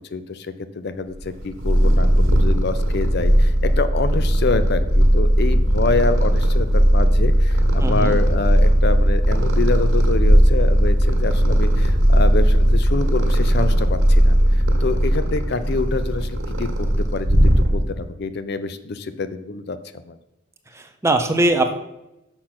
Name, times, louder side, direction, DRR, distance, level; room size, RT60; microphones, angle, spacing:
voice 1, 0.1-0.5 0.7-14.4 14.8-20.2, left 3 dB, 50° left, 12 dB, 0.5 m, -26 dB
Purr, 1.2-18.1, equal, 65° right, 1.7 m, -17 dB
voice 2, 7.8-8.2 20.7-21.7, right 2 dB, 15° right, 6 dB, 0.6 m, -21 dB
6.6 x 5.8 x 5.8 m, 0.93 s
head